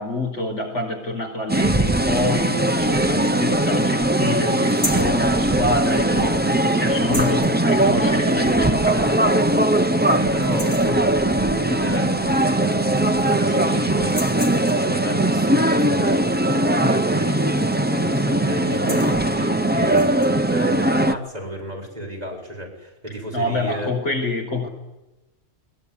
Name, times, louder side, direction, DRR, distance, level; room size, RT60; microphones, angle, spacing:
voice 1, 0.0-9.7 10.5-10.9 23.3-24.7, left 2 dB, 65° left, 2 dB, 5.2 m, -27 dB
sound 1, 1.5-21.1, right 1 dB, 10° right, 0.7 m, -20 dB
sound 2, 4.7-5.1 7.0-7.5 8.9-9.0 9.4-9.5 9.9-10.2 10.4-11.0 12.3-12.4 12.7-13.4 14.0-14.9 17.3-17.6 17.9-18.1 18.6-19.2 19.8-20.3, left 1 dB, 45° left, 4.5 m, -33 dB
voice 2, 7.0-7.4 10.0-14.4 14.7-23.9, equal, 30° right, 0 dB, 6.9 m, -33 dB
22.0 x 21.5 x 10.0 m, 1.0 s
omnidirectional pair, 1.3 m